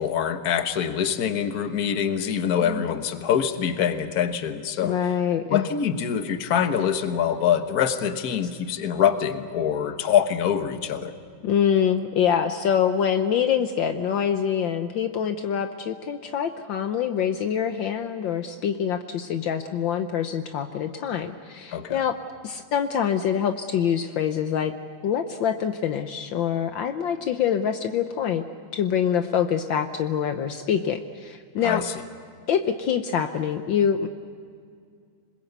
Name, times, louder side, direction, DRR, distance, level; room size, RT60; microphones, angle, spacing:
voice 1, 0.0-5.0 5.5-11.1 21.7-22.0 31.6-31.9, left 8 dB, 50° left, 8 dB, 1.6 m, -24 dB
voice 2, 4.8-5.7 11.4-22.2 22.4-24.7 25.0-28.4 28.7-31.8 32.5-34.1, left 8 dB, 70° left, 7 dB, 1.6 m, -25 dB
27.0 x 21.0 x 8.1 m, 2.2 s
omnidirectional pair, 2.2 m